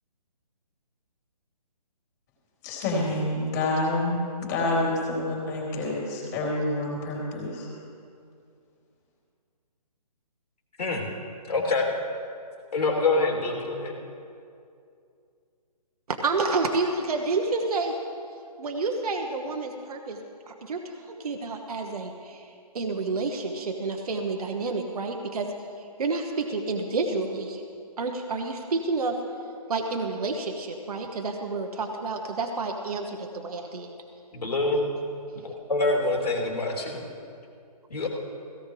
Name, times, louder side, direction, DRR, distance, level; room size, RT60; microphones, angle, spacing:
voice 1, 2.6-7.7, left 2 dB, 25° left, -4 dB, 3.4 m, -28 dB
voice 2, 11.5-11.9 12.7-13.9 34.3-34.9 35.4-37.0 37.9-38.1, left 3 dB, 70° left, -1 dB, 3.2 m, -25 dB
voice 3, 16.1-18.0 18.6-20.2 20.5-25.5 25.8-27.6 28.0-29.2 29.7-33.9 35.3-35.5, right 3 dB, 65° right, 3 dB, 1.2 m, -29 dB
17.0 x 16.0 x 3.3 m, 2.4 s
hypercardioid pair, 160°, 21 cm